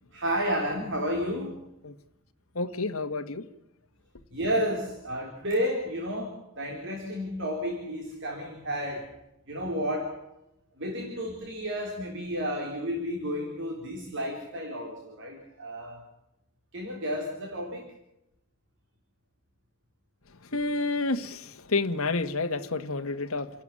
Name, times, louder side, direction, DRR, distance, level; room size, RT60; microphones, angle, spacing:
voice 1, 0.1-1.6 4.3-9.1 9.5-10.2 10.8-16.0 16.7-17.8, equal, 55° right, 3.6 m, -31 dB
voice 2, 2.5-3.5 20.4-23.5, left 3 dB, 70° left, 1.5 m, -29 dB
28.5 x 12.0 x 9.8 m
head